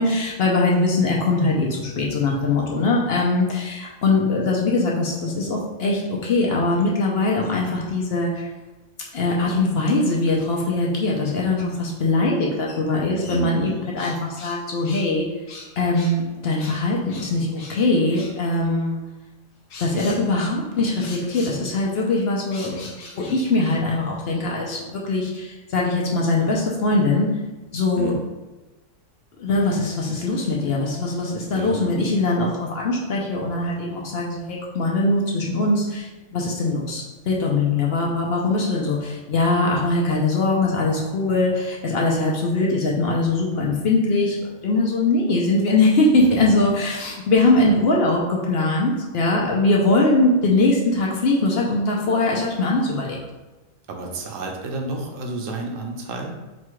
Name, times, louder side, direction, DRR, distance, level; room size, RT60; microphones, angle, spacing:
voice 1, 0.0-8.5 9.1-13.7 13.9-15.3 15.8-19.0 19.8-27.3 27.7-28.2 29.4-53.2, left 2 dB, 60° left, -3 dB, 0.8 m, -21 dB
sound 1, 12.7-12.8 13.2-14.6 14.8-15.1 15.5-16.2 16.6-16.8 17.1-17.8 18.1-18.3 19.7-20.2 21.0-21.6 22.5-23.8, left 3 dB, 75° left, 1.2 m, -41 dB
voice 2, 13.3-13.8 27.9-28.2 31.4-31.9 53.9-56.4, right 2 dB, 75° right, 1 dB, 1.0 m, -31 dB
4.1 x 2.4 x 4.6 m, 1.1 s
omnidirectional pair, 1.4 m